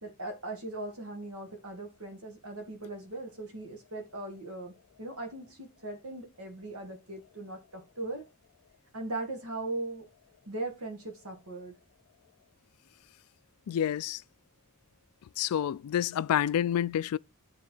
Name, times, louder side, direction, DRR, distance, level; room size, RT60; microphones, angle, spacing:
voice 1, 0.0-8.3 8.9-10.1 10.5-11.7, right 2 dB, 70° right, 1.7 m, -39 dB
voice 2, 13.7-14.2 15.4-17.2, left 10 dB, 75° left, 0.3 m, -28 dB
9.3 x 3.7 x 4.4 m
head